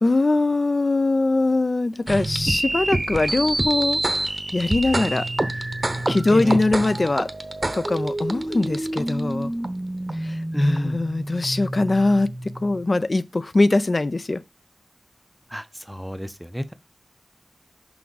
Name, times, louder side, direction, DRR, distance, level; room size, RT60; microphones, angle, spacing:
voice 1, 0.0-4.0 4.5-5.3 6.1-7.3 7.7-9.5 10.2-12.3 12.6-14.4, left 2 dB, 55° left, 0.5 m, -22 dB
sound 1, 2.1-12.8, right 1 dB, 40° right, 0.8 m, -27 dB
voice 2, 10.5-11.0 15.5-16.7, equal, 5° right, 0.5 m, -28 dB
6.0 x 4.8 x 3.9 m
wide cardioid pair, 60°, 0 cm